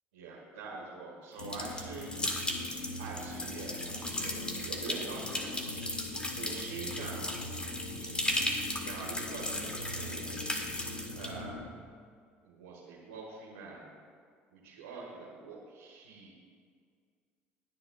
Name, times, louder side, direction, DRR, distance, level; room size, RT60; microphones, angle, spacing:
voice 1, 0.1-2.2 3.0-6.0 6.3-7.3 8.8-10.6 11.1-11.7 12.4-13.9 14.5-16.3, right 4 dB, 90° right, -5 dB, 1.8 m, -45 dB
sound 1, 1.4-11.7, left 1 dB, 85° left, 1.1 m, -43 dB
sound 2, 1.4-11.3, left 1 dB, 15° left, 1.8 m, -36 dB
21.0 x 9.7 x 2.5 m, 2.1 s
hypercardioid pair, 70°, 6 cm